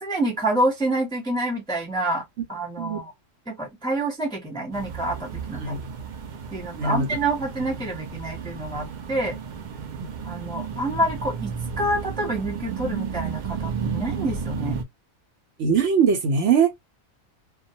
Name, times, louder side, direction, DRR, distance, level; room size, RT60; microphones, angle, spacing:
voice 1, 0.0-2.2 2.5-3.1 3.5-5.8 6.5-9.4 10.3-14.8, right 1 dB, 5° left, 0.5 m, -27 dB
sound 1, 4.7-14.8, right 6 dB, 85° right, 0.4 m, -33 dB
voice 2, 6.7-7.1 10.0-10.1 15.6-16.7, right 6 dB, 65° right, 0.9 m, -21 dB
2.2 x 2.2 x 2.6 m
omnidirectional pair, 1.4 m